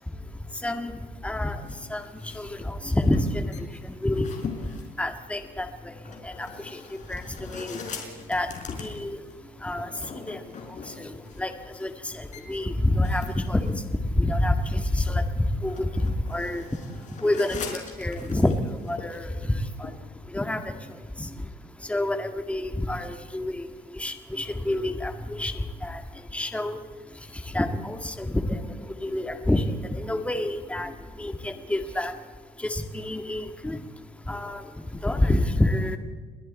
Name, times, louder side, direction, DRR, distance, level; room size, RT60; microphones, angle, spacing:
voice 1, 0.6-0.9 1.2-1.6 1.9-3.7 4.0-4.4 5.0-5.7 6.2-6.8 7.1-7.2 7.5-7.8 8.3-8.5 8.8-9.2 9.6-9.9 10.2-10.4 11.0-11.1 11.4-11.5 11.8-15.2 15.6-15.9 16.3-16.6 17.2-18.5 18.9-19.9 20.3-20.7 21.2-21.3 21.9-23.7 23.9-26.0 26.3-26.8 27.5-28.6 29.0-29.6 29.9-30.9 31.2-32.1 32.6-33.8 34.3-34.6 35.0-36.0, left 1 dB, 5° left, 6 dB, 1.8 m, -27 dB
sound 1, 1.6-19.9, left 5 dB, 45° left, 4.9 m, -42 dB
30.0 x 21.5 x 4.3 m, 1.4 s
cardioid pair, 110°, 17 cm